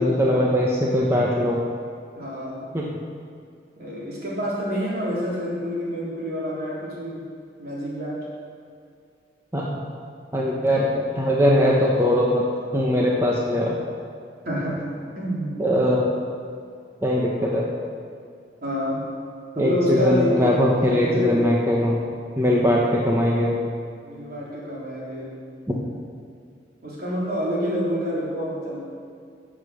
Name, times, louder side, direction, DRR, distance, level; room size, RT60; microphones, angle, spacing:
voice 1, 0.0-1.6 2.7-3.0 9.5-9.8 10.3-12.5 12.7-13.8 15.6-16.2 17.0-17.6 19.6-22.0 22.4-23.5 25.7-25.8, left 1 dB, 15° right, -3 dB, 1.1 m, -21 dB
voice 2, 2.2-2.7 3.8-7.3 7.6-8.3 14.5-14.9 15.2-15.6 18.6-19.1 19.6-21.6 22.4-22.9 24.0-25.3 26.8-28.8, equal, 55° right, -6 dB, 3.8 m, -28 dB
15.0 x 7.5 x 6.3 m, 2.3 s
head